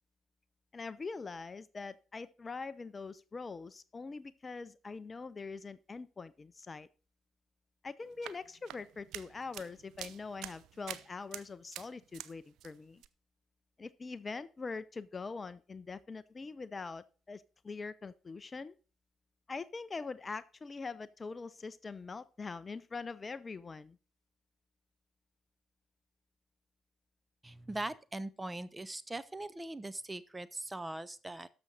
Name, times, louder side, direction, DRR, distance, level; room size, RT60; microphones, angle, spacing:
voice 1, 0.7-6.9 7.8-13.0 13.8-18.7 19.5-24.0, left 4 dB, 30° left, 17 dB, 0.5 m, -43 dB
sound 1, 8.0-12.3 12.6-13.1, right 12 dB, 60° right, 0.5 m, -47 dB
voice 2, 27.4-31.5, right 2 dB, 15° right, 18 dB, 0.7 m, -41 dB
12.5 x 6.1 x 4.0 m, 0.35 s
figure-of-eight pair, 45°, 0 cm